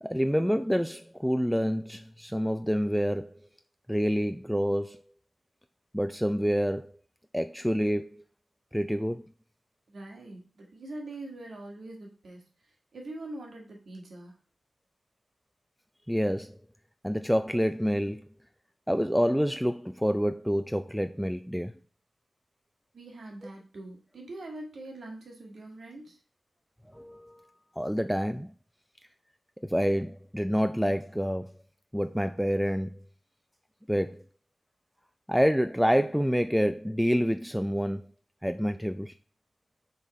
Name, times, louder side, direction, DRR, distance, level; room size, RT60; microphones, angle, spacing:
voice 1, 0.0-3.4 3.9-5.0 5.9-6.9 7.3-8.2 8.7-9.3 16.1-16.6 17.0-18.2 18.9-21.7 26.9-27.4 27.8-28.5 29.6-31.5 31.9-33.0 33.9-34.2 35.3-38.1 38.4-39.1, equal, ahead, 0.3 m, -27 dB
voice 2, 9.9-14.4 22.9-26.2, right 2 dB, 70° right, 1.9 m, -43 dB
6.2 x 4.0 x 4.2 m
wide cardioid pair, 80°, 0 cm